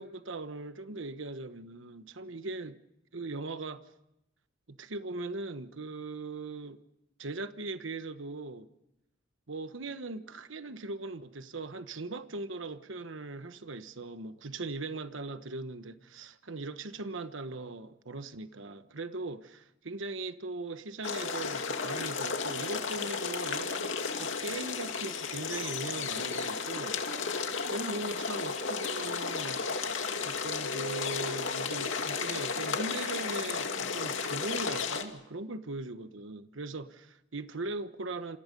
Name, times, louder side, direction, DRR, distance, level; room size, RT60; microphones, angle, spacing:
voice 1, 0.0-2.8 3.1-3.8 4.7-6.8 7.2-8.7 9.5-19.4 19.8-23.9 24.2-27.0 27.7-29.9 30.2-38.4, right 2 dB, 75° right, 1.2 m, -39 dB
sound 1, 21.0-35.0, left 5 dB, 75° left, 2.4 m, -33 dB
27.5 x 27.5 x 5.4 m
head